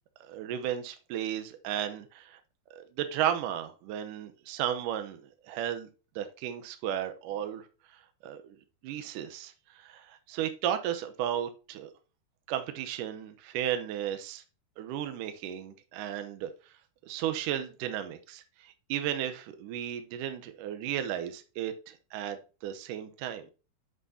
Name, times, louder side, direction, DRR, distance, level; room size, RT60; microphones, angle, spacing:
voice 1, 0.2-2.4 2.7-5.2 5.5-5.9 6.2-7.6 8.2-8.6 8.8-11.9 12.5-14.4 14.8-16.5 17.1-23.5, right 10 dB, 75° right, 8 dB, 2.0 m, -34 dB
11.0 x 6.0 x 2.8 m, 0.33 s
omnidirectional pair, 4.7 m